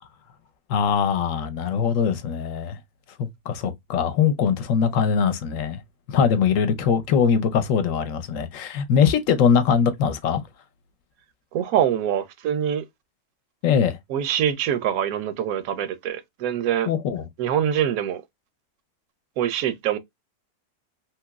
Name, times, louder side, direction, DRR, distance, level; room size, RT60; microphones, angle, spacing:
voice 1, 0.7-2.8 3.2-5.8 6.1-10.4 13.6-14.0 16.9-17.3, left 7 dB, 70° left, 0.9 m, -22 dB
voice 2, 11.5-12.8 14.1-16.9 17.4-18.2 19.4-20.0, right 9 dB, 80° right, 1.0 m, -24 dB
3.0 x 2.9 x 2.3 m
omnidirectional pair, 1.5 m